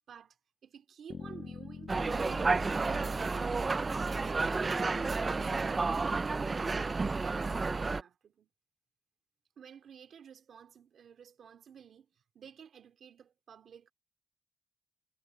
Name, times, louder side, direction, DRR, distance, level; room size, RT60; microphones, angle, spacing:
voice 1, 0.1-6.3 7.1-8.5 9.6-13.9, right 8 dB, 70° right, 2.5 m, -53 dB
sound 1, 1.1-5.1, left 6 dB, 55° left, 0.9 m, -48 dB
sound 2, 1.9-8.0, right 3 dB, 25° right, 0.3 m, -31 dB
wide cardioid pair, 150°, 0 cm